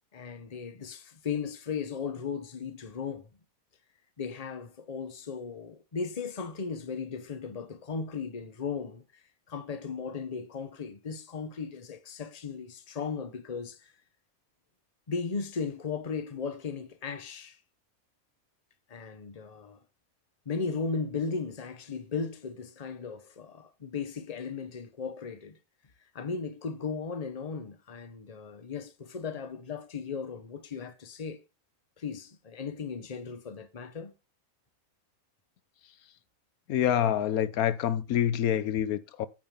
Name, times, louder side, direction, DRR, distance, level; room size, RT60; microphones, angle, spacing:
voice 1, 0.1-3.2 4.2-13.9 15.1-17.6 18.9-19.8 20.5-25.6 26.1-31.4 32.0-34.1, left 5 dB, 30° left, 1.0 m, -36 dB
voice 2, 36.7-39.3, left 10 dB, 85° left, 1.1 m, -27 dB
9.1 x 5.2 x 5.4 m
omnidirectional pair, 1.5 m